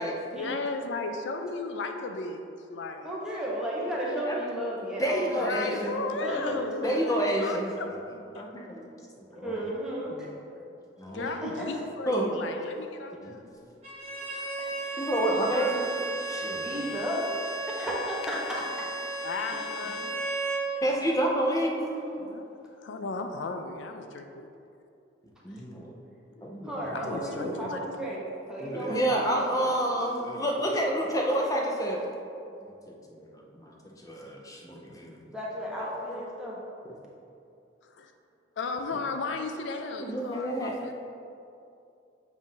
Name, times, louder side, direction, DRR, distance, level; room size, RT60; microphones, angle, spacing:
voice 1, 0.3-2.4 2.7-3.1 5.3-7.9 8.3-8.4 11.1-13.5 15.4-15.8 19.2-20.2 22.2-22.4 22.8-24.5 26.4-26.6 26.9-28.2 30.7-30.8 37.9-38.1 38.6-40.9, left 3 dB, 75° left, 5 dB, 0.4 m, -35 dB
voice 2, 3.0-7.0 9.3-10.3 11.2-11.7 14.4-14.7 16.5-17.3 17.7-18.9 21.8-22.3 26.6-29.5 35.3-36.6, equal, 5° right, -6 dB, 1.0 m, -34 dB
voice 3, 5.0-6.0 6.8-7.7 8.3-8.8 9.2-9.6 10.1-10.3 11.0-11.3 12.1-12.3 13.2-13.4 15.0-15.9 16.3-16.8 20.8-22.0 25.4-25.9 26.4-26.7 27.0-27.6 28.6-32.1 32.6-32.7 33.1-33.3 33.6-35.2 39.6-40.7, right 1 dB, 20° left, -1 dB, 0.6 m, -29 dB
Bowed string instrument, 13.8-20.7, right 2 dB, 35° right, 1.4 m, -34 dB
7.2 x 2.6 x 5.5 m, 2.6 s
head